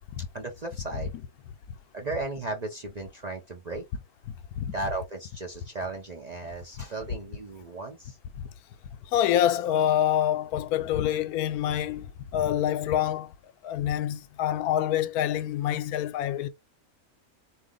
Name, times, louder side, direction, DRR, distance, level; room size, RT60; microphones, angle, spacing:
voice 1, 0.3-1.1 1.9-3.8 4.7-8.2, right 2 dB, 45° right, 0.6 m, -35 dB
voice 2, 4.3-4.7 8.3-8.5 9.1-13.3 13.6-16.5, left 11 dB, 85° left, 1.1 m, -26 dB
4.1 x 2.7 x 3.7 m
omnidirectional pair, 1.5 m